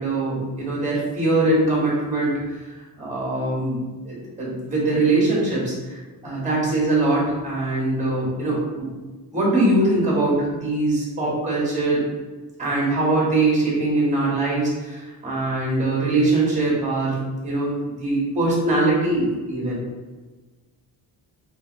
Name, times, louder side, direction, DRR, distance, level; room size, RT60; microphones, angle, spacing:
voice 1, 0.0-2.6 3.0-8.9 9.3-12.0 12.6-19.8, right 2 dB, 20° right, -5 dB, 1.3 m, -22 dB
4.7 x 2.6 x 3.0 m, 1.3 s
wide cardioid pair, 180°, 38 cm